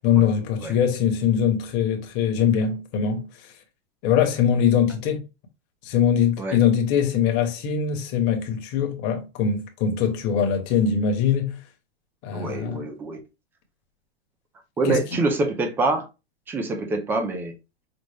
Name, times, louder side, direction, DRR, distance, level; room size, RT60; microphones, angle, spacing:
voice 1, 0.0-3.3 4.0-5.2 5.8-11.6 12.2-12.9 14.8-15.0, left 8 dB, 35° left, 1.1 m, -22 dB
voice 2, 12.3-13.2 14.8-16.1 16.5-17.5, right 3 dB, 5° right, 0.4 m, -25 dB
5.2 x 2.0 x 3.3 m
hypercardioid pair, 145°, 32 cm